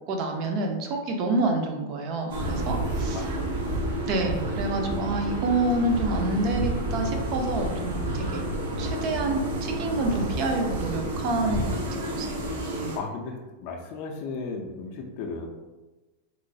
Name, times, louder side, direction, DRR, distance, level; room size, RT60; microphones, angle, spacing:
voice 1, 0.1-3.3 4.0-8.4 8.8-12.4 12.8-12.9, right 2 dB, 35° right, 3 dB, 0.5 m, -28 dB
sound 1, 2.3-13.0, right 1 dB, 75° right, 0.7 m, -30 dB
voice 2, 3.1-4.0 12.6-15.5, left 4 dB, 45° left, 1 dB, 0.4 m, -36 dB
3.0 x 2.9 x 2.6 m, 1.1 s
supercardioid pair, 165°, 0 cm